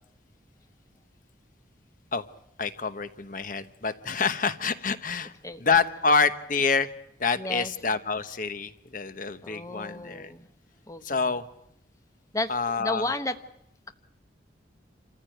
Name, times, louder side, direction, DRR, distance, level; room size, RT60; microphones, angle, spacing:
voice 1, 2.6-5.3 5.6-6.9 7.2-10.3 11.0-11.5 12.5-13.1, left 4 dB, 45° left, 11 dB, 1.1 m, -27 dB
voice 2, 7.4-7.7 9.4-10.5 10.9-11.2 12.3-13.4, left 2 dB, 15° left, 9 dB, 1.1 m, -33 dB
28.0 x 15.0 x 9.2 m, 0.78 s
head